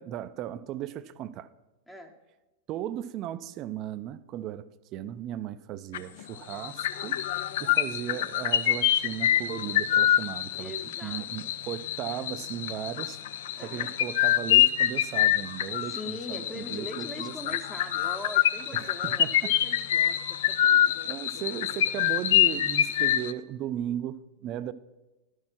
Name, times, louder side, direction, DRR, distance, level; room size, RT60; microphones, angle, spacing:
voice 1, 0.0-1.5 2.7-7.2 7.6-10.7 11.0-13.2 13.6-17.6 18.7-19.4 20.0-20.1 21.0-24.7, right 11 dB, 35° right, 0.4 m, -36 dB
sound 1, 5.9-6.2 6.5-23.3, left 11 dB, 55° left, 0.4 m, -26 dB
voice 2, 10.6-11.5 13.5-13.9 15.8-20.8, left 1 dB, 5° left, 0.8 m, -42 dB
12.0 x 6.4 x 5.8 m
figure-of-eight pair, 90°, 0 cm